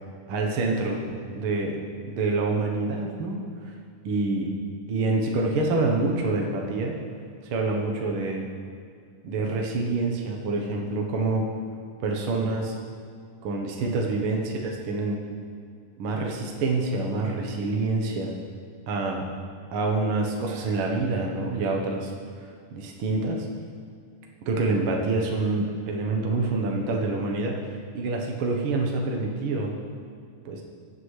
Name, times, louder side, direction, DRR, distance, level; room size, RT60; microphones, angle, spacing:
voice 1, 0.3-1.0 1.3-1.8 2.0-3.4 4.0-4.5 4.9-6.9 7.5-8.4 9.2-11.4 12.0-12.8 13.4-15.2 16.0-18.3 18.9-19.2 19.7-22.1 22.7-23.5 24.5-29.7 30.4-30.6, right 3 dB, 60° right, 0 dB, 1.5 m, -26 dB
17.5 x 7.9 x 3.2 m, 2.2 s
omnidirectional pair, 3.4 m